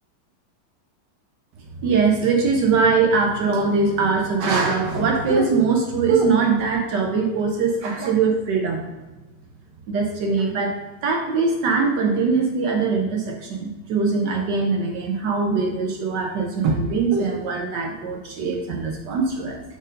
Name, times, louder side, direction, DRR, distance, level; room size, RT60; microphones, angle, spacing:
voice 1, 1.8-8.8 9.9-19.6, right 4 dB, 65° right, 2 dB, 1.2 m, -21 dB
5.2 x 4.3 x 5.0 m, 1.1 s
omnidirectional pair, 2.3 m